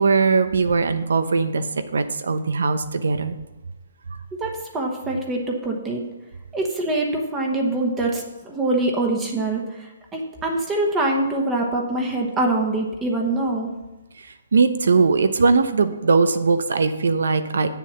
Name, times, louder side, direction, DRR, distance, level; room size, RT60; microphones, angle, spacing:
voice 1, 0.0-1.6 1.9-3.3 14.5-17.7, right 4 dB, 85° right, 10 dB, 0.9 m, -20 dB
voice 2, 4.4-6.0 6.5-13.7, right 2 dB, 10° right, 1 dB, 1.1 m, -24 dB
8.6 x 7.0 x 5.7 m, 1.1 s
hypercardioid pair, 165°, 0 cm